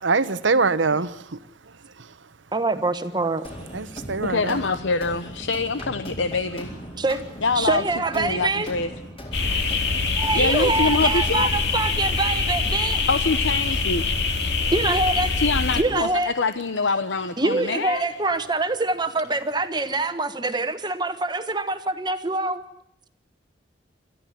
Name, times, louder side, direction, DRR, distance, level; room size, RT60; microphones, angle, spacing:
voice 1, 0.0-1.4 2.0-2.1 3.7-4.6 9.9-10.0, right 4 dB, 80° right, 1.1 m, -24 dB
voice 2, 2.5-3.4 7.0-7.2 7.5-8.7 9.4-9.7 10.2-13.1 14.7-15.3 15.7-16.3 17.4-22.6, right 3 dB, 25° right, 1.3 m, -25 dB
sound 1, 3.4-11.8, equal, 30° left, 4.6 m, -38 dB
voice 3, 4.3-6.7 7.4-7.8 8.1-8.9 10.3-11.5 13.1-14.1 15.4-18.1, left 3 dB, 80° left, 0.9 m, -25 dB
sound 2, 9.3-15.8, left 4 dB, 60° left, 2.5 m, -24 dB
27.5 x 14.0 x 9.1 m
head